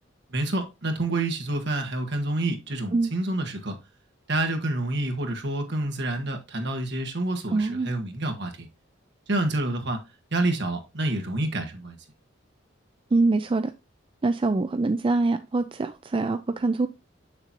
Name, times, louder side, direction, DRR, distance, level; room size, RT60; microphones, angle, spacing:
voice 1, 0.3-3.8 4.3-8.7 9.3-10.0 10.3-12.0, right 2 dB, 65° right, 1.5 m, -28 dB
voice 2, 7.5-7.9 13.1-13.7 14.2-16.9, right 3 dB, 25° right, 0.4 m, -24 dB
6.9 x 6.7 x 3.0 m
head